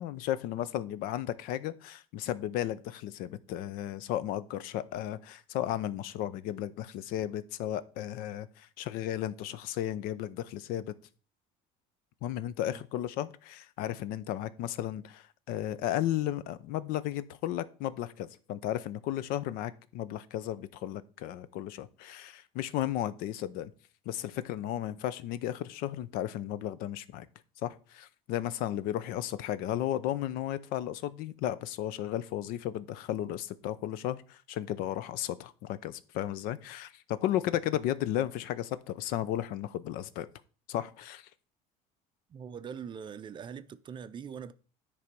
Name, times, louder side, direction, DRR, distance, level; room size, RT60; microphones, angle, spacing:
voice 1, 0.0-10.9 12.2-23.7 24.1-27.3 27.6-40.3 40.7-41.3, left 12 dB, 70° left, 0.6 m, -34 dB
voice 2, 42.3-44.5, right 7 dB, 30° right, 0.5 m, -42 dB
9.7 x 3.4 x 5.2 m
cardioid pair, 125°, 15 cm